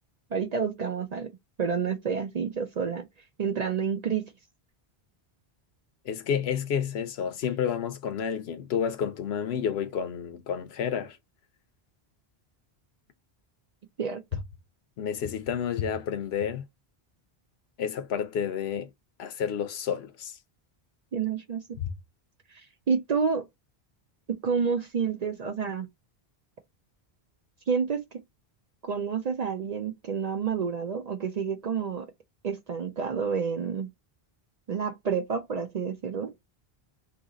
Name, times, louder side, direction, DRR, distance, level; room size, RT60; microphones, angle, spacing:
voice 1, 0.3-1.3 1.6-3.0 3.4-4.3 14.0-14.4 21.1-21.6 22.5-23.5 24.3-25.9 27.7-28.2 28.8-32.1 32.4-33.9 34.7-36.3, right 6 dB, 50° right, 0.5 m, -29 dB
voice 2, 6.1-11.2 15.0-16.6 17.8-18.9 19.2-20.3 21.8-21.9, left 8 dB, 80° left, 0.9 m, -30 dB
2.8 x 2.8 x 3.7 m
omnidirectional pair, 1.0 m